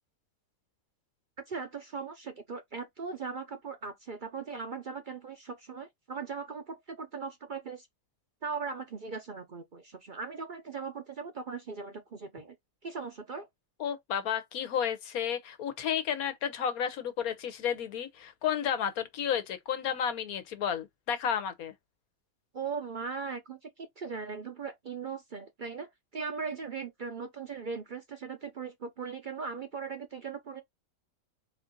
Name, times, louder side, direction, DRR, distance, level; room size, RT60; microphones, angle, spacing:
voice 1, 1.5-7.9 8.4-12.5 12.8-13.5 22.5-30.6, right 5 dB, 50° right, 0.6 m, -39 dB
voice 2, 13.8-21.7, left 8 dB, 90° left, 1.3 m, -32 dB
4.2 x 2.6 x 3.8 m
omnidirectional pair, 1.5 m